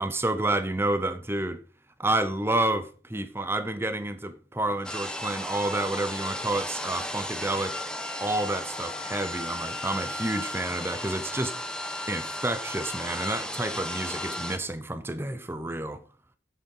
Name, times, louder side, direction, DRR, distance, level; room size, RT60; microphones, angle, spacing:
voice 1, 0.0-1.6 2.0-7.8 8.2-11.6 12.1-16.0, right 2 dB, 15° right, 0.7 m, -29 dB
sound 1, 4.8-14.6, left 1 dB, 5° left, 1.0 m, -34 dB
8.7 x 7.9 x 5.4 m
head